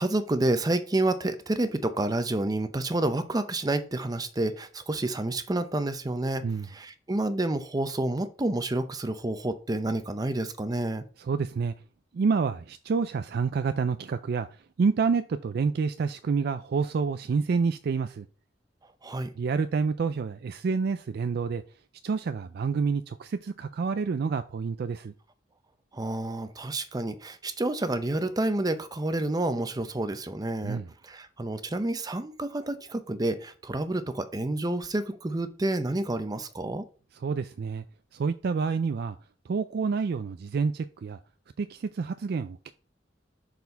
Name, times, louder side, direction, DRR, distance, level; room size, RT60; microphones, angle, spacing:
voice 1, 0.0-11.0 19.0-19.3 25.9-36.8, right 2 dB, 20° right, 0.6 m, -29 dB
voice 2, 11.2-11.7 12.1-14.5 14.8-18.3 19.4-21.6 22.0-25.1 30.6-30.9 37.2-37.8 38.1-39.2 39.5-41.2 41.6-42.7, right 5 dB, 60° right, 0.4 m, -28 dB
6.8 x 4.1 x 4.0 m
head